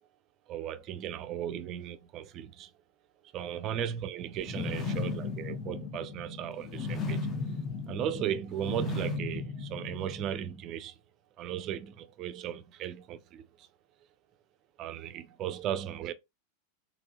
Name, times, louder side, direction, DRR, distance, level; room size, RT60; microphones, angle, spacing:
voice 1, 0.5-2.7 3.3-7.3 7.9-11.0 11.4-13.7 14.8-16.1, right 9 dB, 35° right, 0.5 m, -36 dB
sound 1, 4.4-10.5, left 4 dB, 25° left, 0.9 m, -36 dB
3.7 x 2.9 x 2.5 m
figure-of-eight pair, 90°, 0 cm